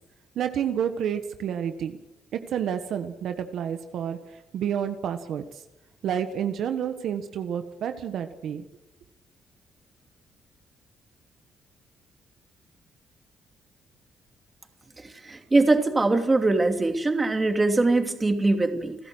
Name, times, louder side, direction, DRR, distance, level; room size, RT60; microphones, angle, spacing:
voice 1, 0.3-2.0 2.3-4.2 4.5-5.6 6.0-8.6, right 9 dB, 70° right, 8 dB, 1.4 m, -29 dB
voice 2, 15.2-19.0, right 2 dB, 20° right, 6 dB, 2.8 m, -22 dB
30.0 x 11.0 x 8.0 m, 0.95 s
cardioid pair, 90°, 0 cm